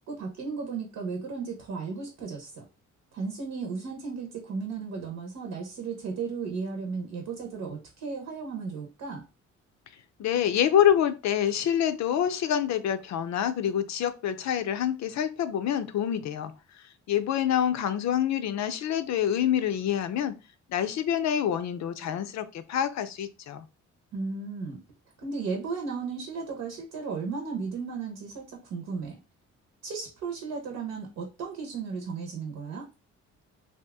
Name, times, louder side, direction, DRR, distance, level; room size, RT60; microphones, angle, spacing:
voice 1, 0.1-2.6 3.1-9.2 24.1-24.8 25.2-29.2 29.8-32.9, right 5 dB, 70° right, 2 dB, 0.9 m, -35 dB
voice 2, 10.2-16.5 17.1-20.3 20.7-23.6, left 10 dB, 65° left, 11 dB, 0.5 m, -26 dB
2.8 x 2.4 x 3.5 m, 0.30 s
cardioid pair, 90°, 30 cm